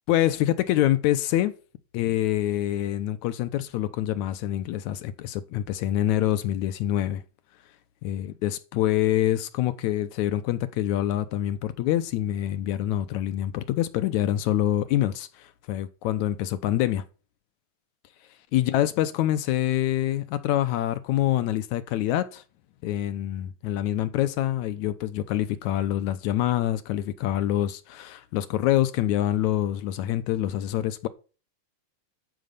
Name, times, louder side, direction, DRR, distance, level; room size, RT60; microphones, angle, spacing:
voice 1, 0.1-1.5 1.9-7.2 8.0-17.0 18.5-22.4 22.8-31.1, left 13 dB, 75° left, 2.1 m, -26 dB
13.0 x 5.2 x 6.8 m
omnidirectional pair, 3.5 m